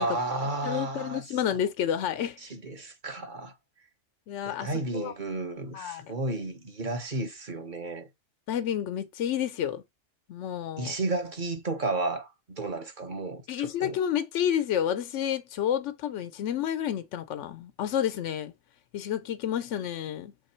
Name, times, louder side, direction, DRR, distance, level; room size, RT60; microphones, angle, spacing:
voice 1, 0.0-1.2 1.5-1.6 2.4-3.5 4.4-8.1 10.8-14.0, right 2 dB, 45° right, 1.3 m, -32 dB
voice 2, 0.6-2.4 4.3-5.1 5.7-6.1 8.5-9.8 10.3-10.9 13.5-18.5 18.9-20.3, left 9 dB, 80° left, 1.0 m, -30 dB
7.0 x 3.4 x 4.4 m
omnidirectional pair, 1.2 m